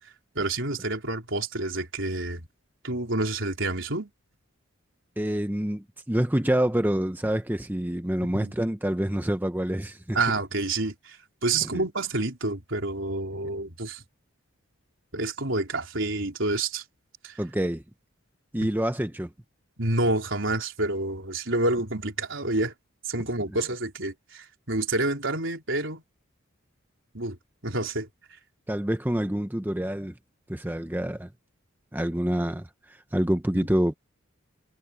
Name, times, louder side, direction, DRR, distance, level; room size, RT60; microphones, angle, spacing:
voice 1, 0.4-2.5 2.8-4.1 8.2-8.5 10.1-11.2 11.4-14.0 15.1-16.8 17.2-17.4 18.6-18.7 19.8-22.7 23.1-26.0 27.1-27.4 27.6-28.1 33.5-33.7, right 2 dB, 65° right, 4.1 m, -28 dB
voice 2, 5.2-10.2 11.6-11.8 17.4-17.8 18.5-19.3 28.7-30.2 30.5-31.3 31.9-33.9, right 1 dB, 10° right, 0.7 m, -27 dB
head